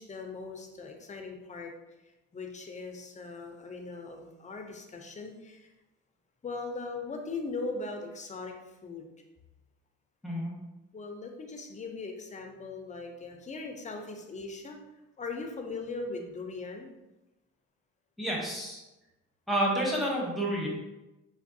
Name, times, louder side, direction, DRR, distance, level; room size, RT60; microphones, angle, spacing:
voice 1, 0.0-1.7 2.3-5.7 6.4-8.5 8.8-9.1 10.9-14.8 15.2-16.9, left 3 dB, 25° left, 3 dB, 0.5 m, -39 dB
voice 2, 18.2-18.8 19.5-20.7, right 1 dB, ahead, -3 dB, 0.9 m, -29 dB
3.3 x 2.3 x 2.6 m, 1.0 s
cardioid pair, 90°, 30 cm